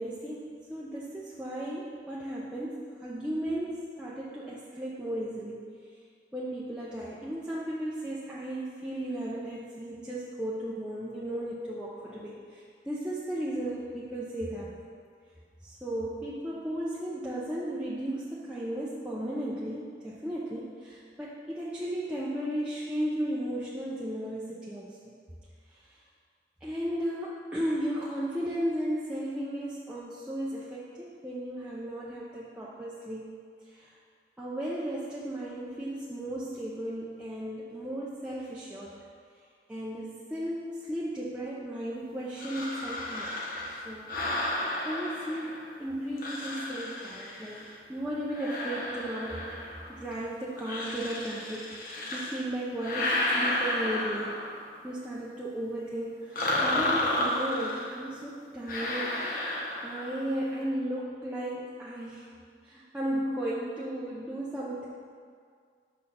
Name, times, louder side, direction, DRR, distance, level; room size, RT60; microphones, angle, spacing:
voice 1, 0.0-5.6 6.3-14.8 15.6-25.1 25.7-25.9 26.6-33.3 33.7-33.9 34.4-39.0 39.7-43.4 43.8-44.1 44.8-47.6 47.9-49.5 49.9-54.5 54.8-59.5 59.8-62.3 62.6-64.9, right 1 dB, 5° right, -8 dB, 0.7 m, -35 dB
sound 1, 42.4-45.7 46.2-47.8 48.3-50.0 50.6-52.4 52.8-54.7 56.3-58.0 58.7-60.2, left 1 dB, 50° left, 1.2 m, -32 dB
6.6 x 6.3 x 5.6 m, 2.1 s
head